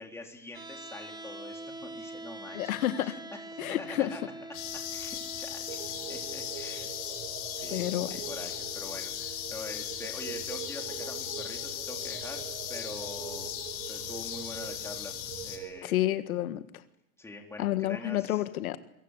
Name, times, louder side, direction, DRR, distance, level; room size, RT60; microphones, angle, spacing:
voice 1, 0.0-3.2 3.5-4.2 4.7-6.9 7.5-12.4 12.7-13.5 13.9-15.9 17.2-18.4, left 2 dB, 5° left, 1 dB, 3.7 m, -45 dB
sound 1, 0.5-12.6, right 2 dB, 10° right, 4.3 m, -47 dB
voice 2, 2.5-3.2 3.6-4.1 7.7-8.1 15.8-16.6 17.6-18.8, left 13 dB, 70° left, 10 dB, 1.7 m, -29 dB
sound 2, 4.5-15.6, left 11 dB, 35° left, 5.2 m, -38 dB
sound 3, 5.7-15.8, right 15 dB, 55° right, 2.3 m, -44 dB
26.0 x 23.5 x 8.2 m, 0.78 s
supercardioid pair, 150°, 44 cm